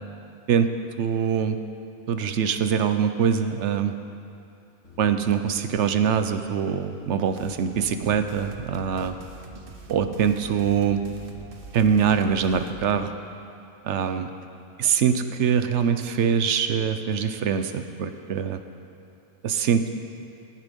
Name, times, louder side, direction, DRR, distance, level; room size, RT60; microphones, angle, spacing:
voice 1, 1.0-1.6 2.1-3.9 5.0-9.2 9.9-11.0 11.7-13.1 13.8-14.3 14.8-18.6 19.4-19.9, right 7 dB, 75° right, 9 dB, 1.0 m, -23 dB
sound 1, 4.8-12.6, left 2 dB, 80° left, 1.8 m, -47 dB
sound 2, 7.4-12.9, right 4 dB, 50° right, 1.1 m, -44 dB
17.0 x 9.1 x 5.3 m, 2.7 s
omnidirectional pair, 1.2 m